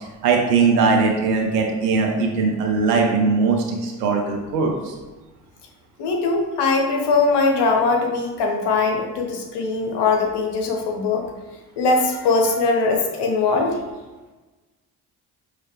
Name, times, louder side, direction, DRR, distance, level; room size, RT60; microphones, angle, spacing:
voice 1, 0.2-4.9, right 4 dB, 90° right, 1 dB, 0.6 m, -20 dB
voice 2, 6.0-11.2 11.8-13.8, left 3 dB, 60° left, 1 dB, 1.0 m, -21 dB
4.8 x 3.1 x 3.0 m, 1.2 s
hypercardioid pair, 45°, 46 cm